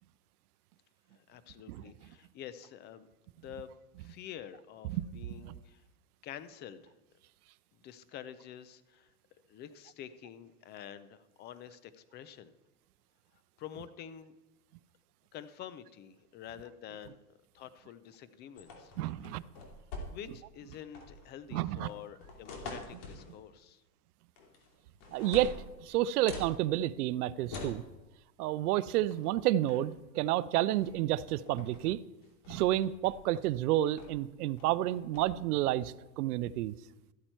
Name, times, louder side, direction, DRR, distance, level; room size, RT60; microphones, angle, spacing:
voice 1, 1.1-3.0 3.4-3.7 4.0-5.8 6.2-6.9 7.7-9.1 9.5-12.5 13.6-14.3 15.3-17.2 17.5-18.9 19.3-19.4 20.1-23.8, left 10 dB, 20° left, 0.5 m, -48 dB
sound 1, 18.6-20.4 20.7-21.3 21.9-23.3 24.4-24.7 25.0-26.5 27.5-27.8 29.1-29.3 29.6-30.0 30.8-31.0 31.3-31.8 32.2-33.5 34.0-34.3 34.6-35.3, left 3 dB, 50° left, 2.8 m, -45 dB
voice 2, 19.0-19.4 21.5-21.9 25.1-25.5 25.8-27.8 28.4-32.0 32.5-36.8, right 14 dB, 70° right, 0.6 m, -30 dB
14.0 x 8.7 x 4.5 m
supercardioid pair, 130°, 48 cm